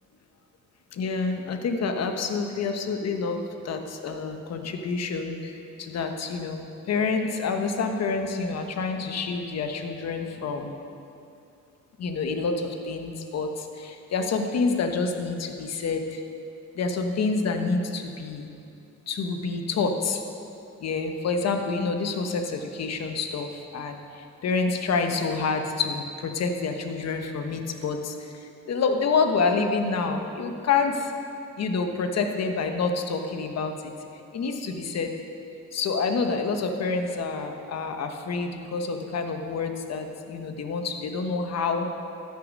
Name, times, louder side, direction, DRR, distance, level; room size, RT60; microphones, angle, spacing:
voice 1, 0.9-10.7 12.0-16.2 16.7-18.5 19.1-20.2 20.8-31.1 31.6-33.9 34.3-35.1 35.7-41.9, left 4 dB, 60° left, 6 dB, 1.1 m, -28 dB
13.0 x 6.7 x 5.3 m, 2.7 s
cardioid pair, 90°, 30 cm